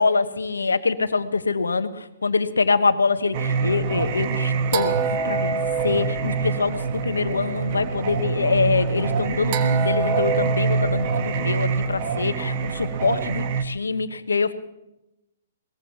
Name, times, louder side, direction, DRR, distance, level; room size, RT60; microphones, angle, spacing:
voice 1, 0.0-5.0 5.2-5.6 5.8-14.5, left 4 dB, 85° left, 11 dB, 1.1 m, -24 dB
Singing, 3.3-13.6, right 5 dB, 45° right, 1.3 m, -24 dB
22.0 x 20.0 x 3.0 m, 0.91 s
figure-of-eight pair, 125°, 0 cm